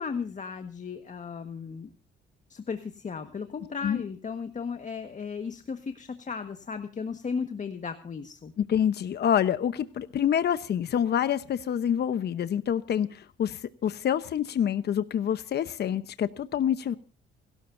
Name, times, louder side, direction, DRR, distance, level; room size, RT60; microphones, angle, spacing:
voice 1, 0.0-1.9 2.5-8.5, left 5 dB, 40° left, 1.5 m, -35 dB
voice 2, 8.6-17.0, left 9 dB, 55° left, 0.9 m, -27 dB
29.5 x 12.5 x 2.6 m
cardioid pair, 90°, 20 cm